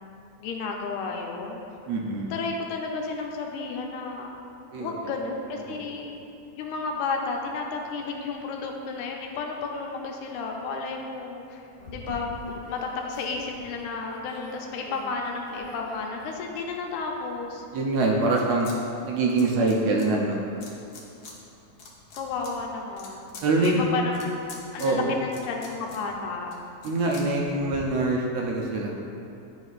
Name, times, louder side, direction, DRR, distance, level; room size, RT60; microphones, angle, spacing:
voice 1, 0.4-1.6 2.3-4.3 4.8-6.1 6.6-11.6 11.9-17.7 18.4-18.6 22.2-23.3 23.6-24.3 24.7-26.5, left 4 dB, 90° left, 1 dB, 2.1 m, -32 dB
voice 2, 1.9-2.3 4.7-4.9 17.7-18.7 19.0-20.4 23.4-23.9 24.8-25.1 26.8-28.9, right 2 dB, 75° right, -1 dB, 1.7 m, -24 dB
sound 1, 11.8-16.9 17.4-18.8 19.0-20.1 20.6-21.3 21.7-27.8, left 2 dB, 65° left, 1.2 m, -44 dB
11.0 x 5.0 x 2.4 m, 2.6 s
omnidirectional pair, 3.3 m